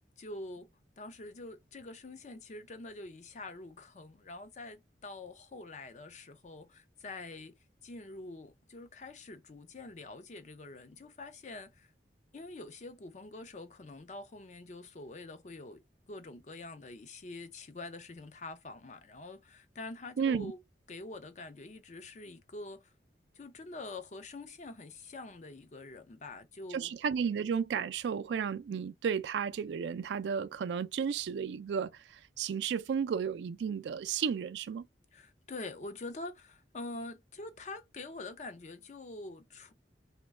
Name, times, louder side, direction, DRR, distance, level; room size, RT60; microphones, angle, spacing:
voice 1, 0.2-0.7 1.0-7.5 7.8-11.9 12.3-15.8 16.1-20.6 20.9-22.9 23.3-26.9 35.1-39.7, left 2 dB, 40° left, 0.5 m, -45 dB
voice 2, 20.2-20.5 26.7-31.9 32.4-34.8, right 7 dB, 80° right, 0.3 m, -33 dB
3.0 x 2.2 x 3.5 m
head